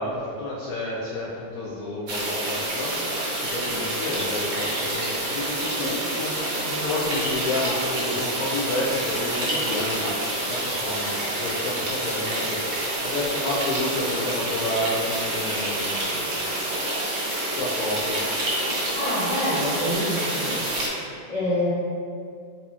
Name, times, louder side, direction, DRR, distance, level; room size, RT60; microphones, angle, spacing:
voice 1, 0.0-11.1 11.4-16.5 17.2-17.3 17.5-18.2, left 1 dB, 70° left, -7 dB, 0.9 m, -30 dB
sound 1, 2.1-20.9, right 1 dB, 75° right, 1.4 m, -28 dB
voice 2, 18.9-20.6 21.3-21.7, left 1 dB, 25° right, -14 dB, 0.9 m, -26 dB
4.0 x 2.8 x 2.4 m, 2.3 s
omnidirectional pair, 1.8 m